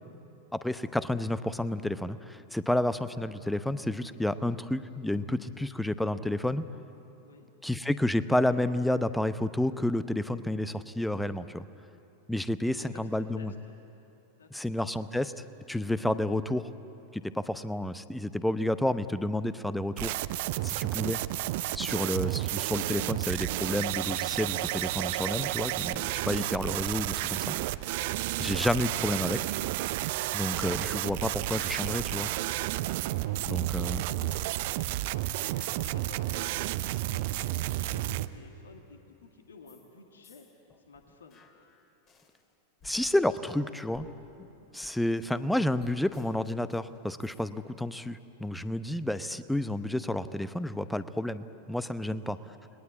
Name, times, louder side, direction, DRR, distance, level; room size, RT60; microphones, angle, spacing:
voice 1, 0.5-6.6 7.6-11.7 12.3-13.5 14.5-15.3 15.7-16.7 17.1-20.2 20.6-21.2 21.7-27.5 28.4-29.4 30.3-32.3 33.4-34.0 42.8-44.1 44.7-52.4, left 1 dB, 5° left, 13 dB, 0.8 m, -30 dB
voice 2, 7.2-7.5 12.6-13.7 14.4-14.7 28.2-28.5 33.0-34.9 35.5-40.5 40.9-41.4 52.0-52.4, left 4 dB, 70° left, 3 dB, 2.2 m, -52 dB
sound 1, 20.0-38.3, right 16 dB, 50° right, 0.6 m, -31 dB
sound 2, 39.6-39.9 40.2-42.4 42.8-47.4, left 4 dB, 30° left, 2.8 m, -57 dB
29.5 x 20.5 x 8.5 m, 2.8 s
figure-of-eight pair, 90°, 0 cm